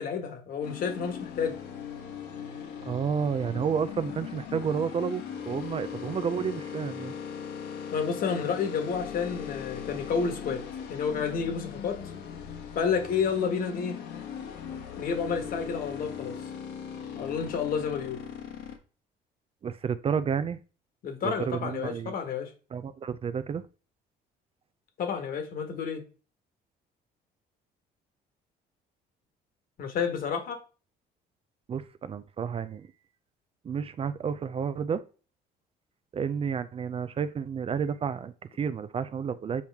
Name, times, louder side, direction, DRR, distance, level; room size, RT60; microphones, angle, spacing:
voice 1, 0.0-1.6 7.9-10.6 10.9-12.0 12.7-14.0 15.0-16.3 17.1-18.2 21.0-22.5 25.0-26.0 29.8-30.6, left 6 dB, 60° left, 1.5 m, -30 dB
sound 1, 0.6-18.8, left 8 dB, 80° left, 1.4 m, -39 dB
voice 2, 2.8-7.1 19.6-20.6 21.2-22.1 22.7-23.6 31.7-32.9 33.6-35.0 36.1-39.6, right 7 dB, 35° right, 0.4 m, -31 dB
7.1 x 4.5 x 3.5 m
cardioid pair, 110°, 17 cm